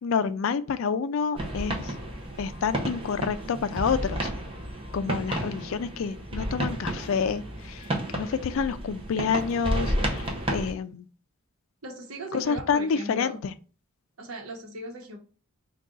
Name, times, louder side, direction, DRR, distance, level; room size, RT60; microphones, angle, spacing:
voice 1, 0.0-1.9 2.4-4.3 4.9-11.1 12.3-13.5, left 6 dB, 65° left, 0.3 m, -28 dB
sound 1, 1.3-10.7, right 1 dB, 25° right, 0.7 m, -32 dB
voice 2, 11.8-13.4 14.2-15.2, right 2 dB, 85° right, 1.0 m, -38 dB
3.7 x 2.3 x 3.7 m
head